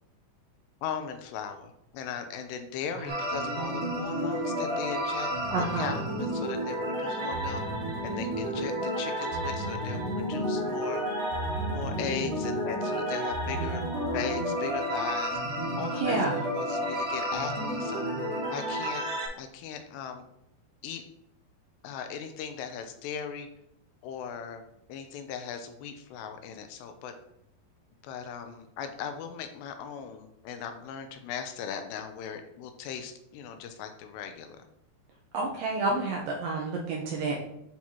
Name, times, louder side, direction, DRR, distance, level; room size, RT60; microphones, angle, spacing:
voice 1, 0.8-5.3 5.8-7.6 8.0-11.0 11.7-15.4 15.8-16.2 16.5-18.1 18.5-19.0 19.4-20.2 20.8-21.0 21.8-23.5 24.0-24.6 24.9-27.1 28.0-34.6, left 7 dB, 85° left, 7 dB, 2.7 m, -38 dB
sound 1, 3.1-19.3, equal, 50° right, 1.8 m, -31 dB
voice 2, 5.5-6.0 15.9-16.4 35.3-37.4, right 3 dB, 80° right, -2 dB, 2.1 m, -29 dB
9.1 x 4.5 x 2.8 m, 0.78 s
omnidirectional pair, 4.9 m